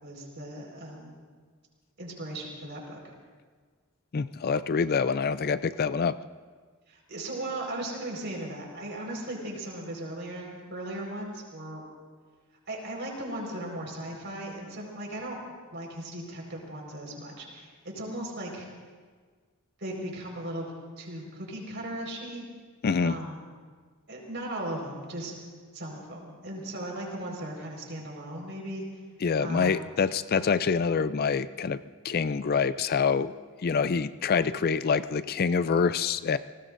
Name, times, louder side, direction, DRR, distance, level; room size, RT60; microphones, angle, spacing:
voice 1, 0.0-1.2 2.0-3.1 6.9-11.9 12.7-15.4 15.7-18.7 19.8-20.7 21.0-22.5 23.0-23.4 24.1-25.4 25.7-28.8 29.4-29.8, right 1 dB, 55° right, 0 dB, 4.7 m, -37 dB
voice 2, 4.1-6.2 22.8-23.2 29.2-33.3 33.6-36.4, left 5 dB, 45° left, 14 dB, 0.4 m, -26 dB
29.5 x 19.0 x 2.6 m, 1.5 s
head